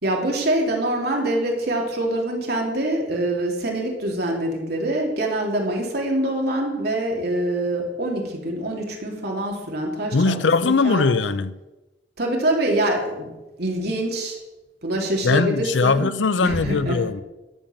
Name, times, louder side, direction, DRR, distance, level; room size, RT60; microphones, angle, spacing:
voice 1, 0.0-10.3 10.6-11.0 12.2-13.3 13.6-14.4 14.8-16.1 16.4-17.0, right 1 dB, 60° right, 3.2 m, -24 dB
voice 2, 10.1-11.5 15.2-17.2, left 4 dB, 85° left, 0.6 m, -20 dB
12.5 x 7.1 x 7.2 m
head